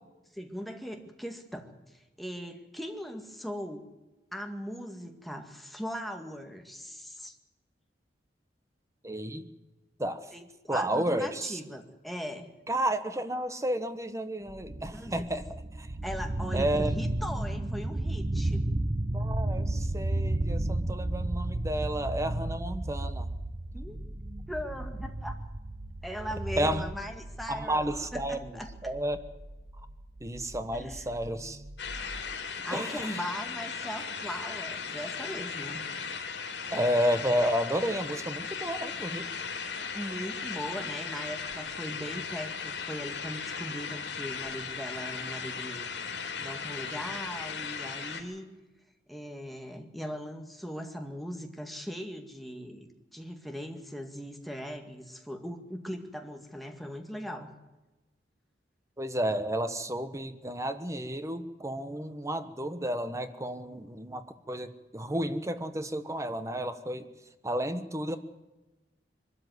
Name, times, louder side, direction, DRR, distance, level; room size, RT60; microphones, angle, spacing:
voice 1, 0.3-3.9 4.3-7.3 10.3-12.5 14.9-15.3 16.0-18.7 23.7-24.0 24.5-25.4 26.0-28.7 30.7-31.2 32.6-35.8 39.9-45.9 46.4-48.5 49.1-57.5, equal, ahead, 4 dB, 2.0 m, -39 dB
voice 2, 9.0-9.5 10.0-10.2 10.7-11.6 12.7-15.5 15.8-15.9 16.5-16.9 19.1-23.3 26.6-26.8 27.5-29.2 30.2-31.6 32.7-33.2 36.7-39.3 59.0-67.1 67.4-68.2, right 1 dB, 15° right, 10 dB, 1.2 m, -31 dB
sound 1, 14.5-32.3, right 1 dB, 35° right, 0.8 m, -34 dB
sound 2, 31.8-48.2, left 5 dB, 90° left, 3.6 m, -37 dB
23.0 x 13.0 x 9.5 m, 1.1 s
head